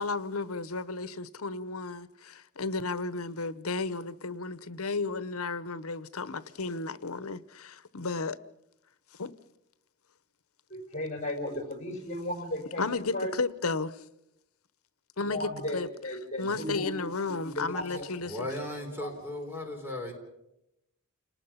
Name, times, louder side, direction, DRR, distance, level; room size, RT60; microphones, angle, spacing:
voice 1, 0.0-8.4 9.2-9.3 12.8-14.0 15.2-15.9 16.4-18.5, left 3 dB, 75° left, 1.0 m, -33 dB
voice 2, 10.7-13.3 15.2-16.9 17.3-18.1 19.0-19.1, left 1 dB, 35° left, 5.7 m, -35 dB
voice 3, 18.2-20.1, left 1 dB, 10° right, 4.3 m, -36 dB
29.0 x 19.0 x 5.8 m
head